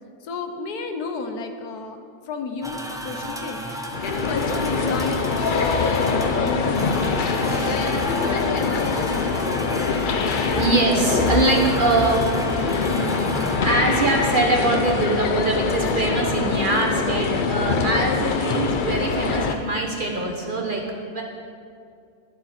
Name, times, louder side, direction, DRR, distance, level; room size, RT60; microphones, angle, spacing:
voice 1, 0.2-2.0 2.2-6.9 7.8-8.5, left 4 dB, 75° left, 6 dB, 1.4 m, -32 dB
sound 1, 2.6-20.2, right 1 dB, 5° right, 0.5 m, -34 dB
sound 2, 3.9-19.6, left 4 dB, 60° left, 0.5 m, -24 dB
voice 2, 10.3-13.1 13.6-21.2, right 2 dB, 35° right, 1 dB, 1.1 m, -23 dB
12.0 x 11.5 x 4.4 m, 2.3 s
omnidirectional pair, 1.7 m